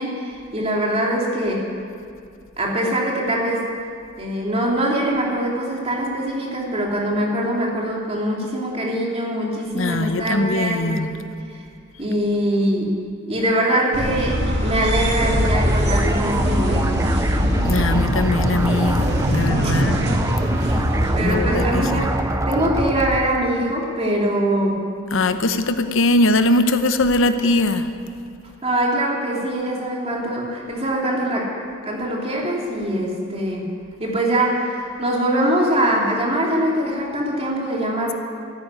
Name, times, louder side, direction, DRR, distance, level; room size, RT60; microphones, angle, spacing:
voice 1, 0.0-1.7 2.6-3.7 4.2-11.0 12.0-13.0 13.3-17.1 19.6-19.7 21.1-24.9 28.6-31.5 31.8-33.7 34.0-38.1, right 1 dB, 30° right, -2 dB, 2.8 m, -23 dB
voice 2, 9.7-11.1 17.6-20.0 20.6-20.8 21.2-22.0 25.1-27.9, left 2 dB, 70° left, 9 dB, 0.9 m, -21 dB
sound 1, 13.9-22.2, equal, 55° right, 2.4 m, -23 dB
sound 2, 15.2-23.4, right 1 dB, 15° right, 0.5 m, -24 dB
13.5 x 10.5 x 9.5 m, 2.3 s
head